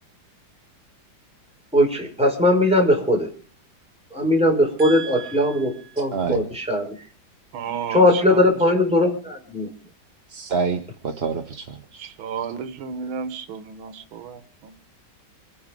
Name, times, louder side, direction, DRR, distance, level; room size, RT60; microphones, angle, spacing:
voice 1, 1.7-3.3 4.1-6.9 7.9-9.7, left 1 dB, 5° right, 5.2 m, -19 dB
voice 2, 4.8-5.7 6.1-6.4 10.3-12.1, right 5 dB, 40° right, 1.0 m, -29 dB
voice 3, 7.5-8.4 12.0-14.7, right 6 dB, 85° right, 1.9 m, -32 dB
27.0 x 10.0 x 5.2 m
omnidirectional pair, 2.2 m